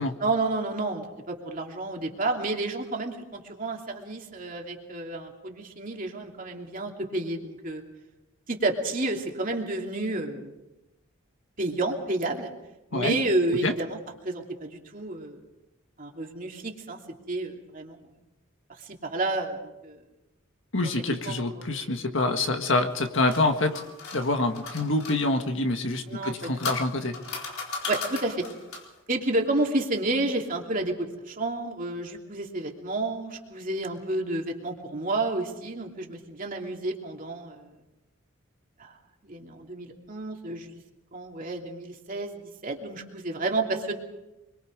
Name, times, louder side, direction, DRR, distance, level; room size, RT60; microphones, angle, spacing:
voice 1, 0.2-7.8 8.5-10.6 11.6-12.5 12.9-14.0 14.2-15.4 16.0-17.0 17.3-18.1 18.8-20.0 20.8-21.4 26.1-26.5 27.9-28.4 29.1-37.7 38.8-38.9 39.2-40.8 41.1-43.9, right 2 dB, 40° right, 1 dB, 2.8 m, -30 dB
voice 2, 20.7-23.8 24.1-27.1, left 2 dB, 65° left, 5 dB, 1.8 m, -26 dB
sound 1, 22.9-25.2 26.1-29.0, left 4 dB, 90° left, 4.5 m, -36 dB
25.0 x 23.0 x 5.2 m, 0.98 s
head